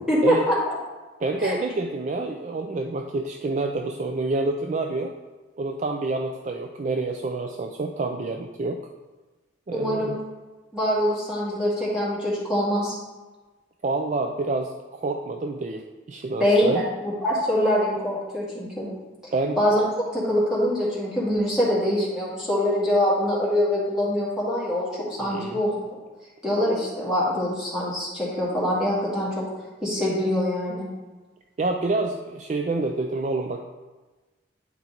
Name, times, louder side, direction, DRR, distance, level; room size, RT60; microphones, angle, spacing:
voice 1, 0.1-0.8 1.4-1.6 9.7-10.2 10.7-13.0 16.4-18.9 19.2-19.9 20.1-24.9 25.2-26.0 26.4-29.4 29.8-30.9, left 1 dB, 5° right, -8 dB, 2.1 m, -24 dB
voice 2, 1.2-5.1 5.6-8.8 9.7-10.2 13.8-16.8 19.3-19.6 25.2-25.6 31.6-33.6, right 3 dB, 35° right, 3 dB, 0.3 m, -28 dB
9.5 x 4.4 x 3.9 m, 1.2 s
head